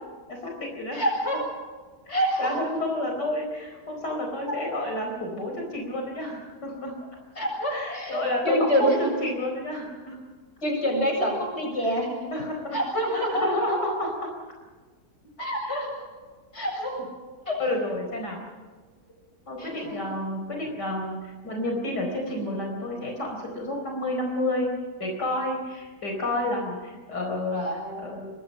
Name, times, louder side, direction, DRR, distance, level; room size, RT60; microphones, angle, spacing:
voice 1, 0.3-1.0 2.1-7.0 7.7-10.2 12.3-12.8 13.1-14.1 15.6-15.9 17.0-17.1 17.6-18.5 19.5-24.7 25.0-27.6 28.0-28.3, left 1 dB, 80° left, 1 dB, 5.0 m, -30 dB
voice 2, 0.9-1.4 2.1-2.6 7.4-9.1 10.6-12.3 12.7-13.5 15.4-16.0 16.5-17.0 17.5-17.6 19.6-20.1 27.5-28.2, equal, 40° left, 1 dB, 7.7 m, -27 dB
25.0 x 22.5 x 5.6 m, 1.4 s
omnidirectional pair, 1.8 m